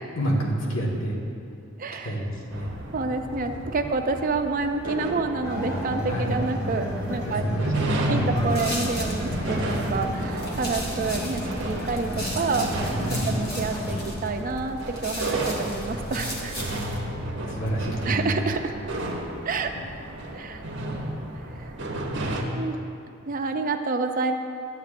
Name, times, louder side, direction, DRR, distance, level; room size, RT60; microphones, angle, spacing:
voice 1, 0.1-1.2 2.0-2.7 6.1-6.4 7.2-8.4 13.0-13.3 17.5-18.4, right 1 dB, 70° left, -2 dB, 1.5 m, -28 dB
voice 2, 1.8-2.2 2.9-7.5 8.0-12.7 13.3-16.6 18.1-18.7 19.5-19.7 20.3-20.6 21.6-21.7 22.5-22.8 23.3-24.3, right 3 dB, 45° right, 5 dB, 0.5 m, -28 dB
sound 1, 2.5-22.4, right 1 dB, 60° right, 0.8 m, -33 dB
sound 2, 5.4-14.0, equal, 15° left, 1.6 m, -32 dB
sound 3, 8.4-17.0, equal, 50° left, 1.2 m, -36 dB
11.5 x 8.0 x 2.5 m, 2.5 s
head